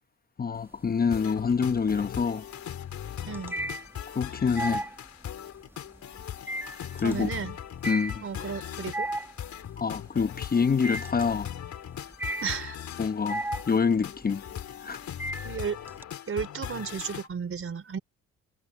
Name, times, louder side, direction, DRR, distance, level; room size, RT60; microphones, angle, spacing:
voice 1, 0.4-2.5 4.1-4.9 6.9-7.3 7.9-8.2 9.8-11.5 13.0-14.4 14.8-15.0, left 5 dB, 30° left, 0.9 m, -26 dB
sound 1, 0.5-1.2 1.5-16.0, right 1 dB, 5° right, 1.1 m, -36 dB
sound 2, 1.1-17.3, left 10 dB, 65° left, 4.1 m, -39 dB
voice 2, 3.3-3.6 7.0-7.6 8.2-9.1 12.4-12.8 15.4-15.8 16.3-18.0, right 6 dB, 45° right, 4.8 m, -33 dB
cardioid pair, 90°, 30 cm